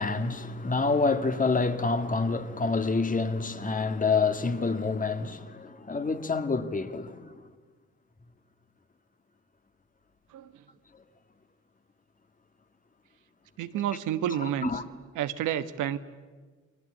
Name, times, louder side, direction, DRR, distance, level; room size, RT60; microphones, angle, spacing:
voice 1, 0.0-7.3 14.6-14.8, left 4 dB, 25° left, 1.8 m, -27 dB
voice 2, 13.6-14.7 15.1-16.0, right 11 dB, 85° right, 1.2 m, -30 dB
30.0 x 22.0 x 8.7 m
cardioid pair, 90°, 30 cm